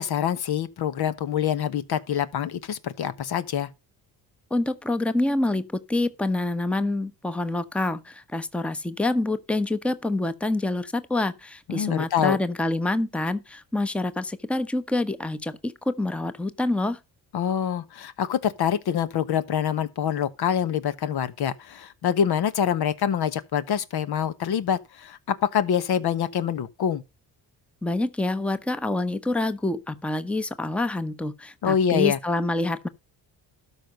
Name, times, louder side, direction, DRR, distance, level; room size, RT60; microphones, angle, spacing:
voice 1, 0.0-3.7 11.7-12.4 17.3-27.0 31.6-32.2, left 8 dB, 65° left, 1.1 m, -25 dB
voice 2, 4.5-17.0 27.8-32.9, left 2 dB, 5° left, 0.8 m, -27 dB
12.5 x 5.3 x 5.2 m
cardioid pair, 95°, 42 cm